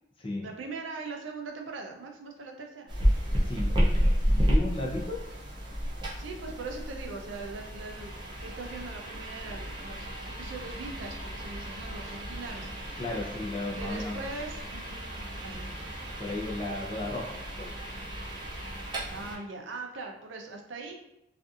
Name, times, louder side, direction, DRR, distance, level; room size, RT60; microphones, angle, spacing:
voice 1, 0.4-2.9 6.2-8.1 8.4-12.7 13.8-15.8 19.1-20.9, right 3 dB, 80° right, 2 dB, 0.5 m, -41 dB
sound 1, 2.9-19.4, equal, 25° right, 0.5 m, -32 dB
voice 2, 4.3-5.2 13.0-14.2 16.2-17.7, left 2 dB, 30° left, -2 dB, 0.5 m, -34 dB
2.6 x 2.4 x 2.4 m, 0.84 s
head